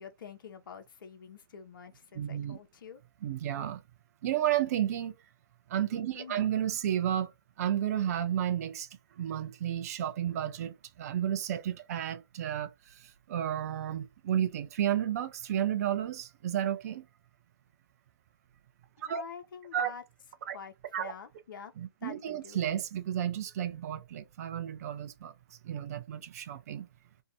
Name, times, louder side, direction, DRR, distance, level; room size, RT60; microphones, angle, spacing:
voice 1, 0.0-3.0 6.1-6.5 19.0-20.0 20.5-21.7 22.0-22.6, left 7 dB, 55° left, 0.6 m, -47 dB
voice 2, 2.2-2.6 3.2-3.8 4.2-5.2 5.7-7.3 7.6-8.9 9.2-17.1 19.0-19.2 19.7-19.9 20.5-20.6 20.9-21.1 21.8-25.3 25.6-26.9, right 10 dB, 40° right, 0.4 m, -32 dB
2.6 x 2.0 x 2.6 m
hypercardioid pair, 140°, 13 cm